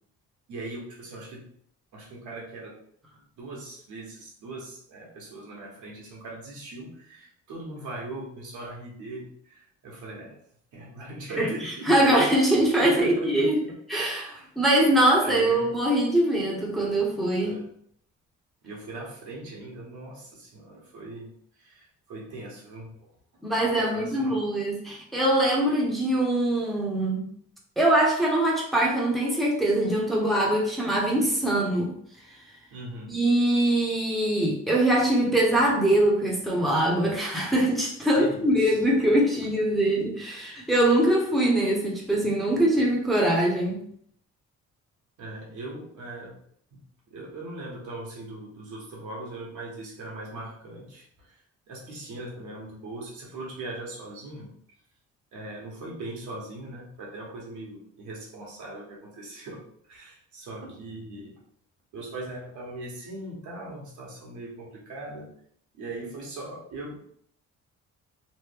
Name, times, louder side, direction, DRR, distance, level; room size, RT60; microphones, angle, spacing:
voice 1, 0.5-1.5 1.9-2.8 3.4-10.4 10.7-12.0 12.8-13.8 14.1-14.5 15.2-15.7 17.4-17.7 18.6-21.3 21.6-23.1 23.7-24.4 32.7-33.1 38.1-38.8 45.2-46.4 46.7-51.4 51.7-54.5 55.3-59.6 59.9-61.3 61.9-65.3 65.7-67.0, right 2 dB, 75° right, -3 dB, 1.2 m, -40 dB
voice 2, 11.4-13.5 13.9-17.5 23.4-27.2 27.8-31.9 33.1-43.8, right 1 dB, ahead, -2 dB, 0.8 m, -23 dB
3.2 x 2.1 x 3.4 m, 0.65 s
cardioid pair, 90°, 30 cm